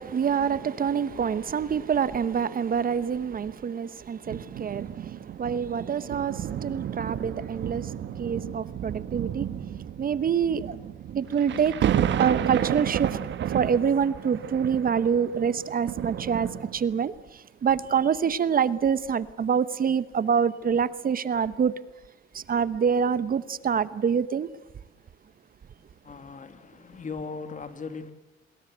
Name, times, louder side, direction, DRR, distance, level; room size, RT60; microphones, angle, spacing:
voice 1, 0.0-9.5 10.0-10.8 11.1-11.8 12.2-13.2 13.5-21.7 22.3-24.5, right 7 dB, 45° right, 1.0 m, -26 dB
sound 1, 4.3-17.0 17.7-17.9, right 10 dB, 65° right, 1.4 m, -32 dB
voice 2, 26.0-28.1, left 4 dB, 40° left, 2.7 m, -38 dB
24.5 x 21.5 x 8.0 m
cardioid pair, 90°, 20 cm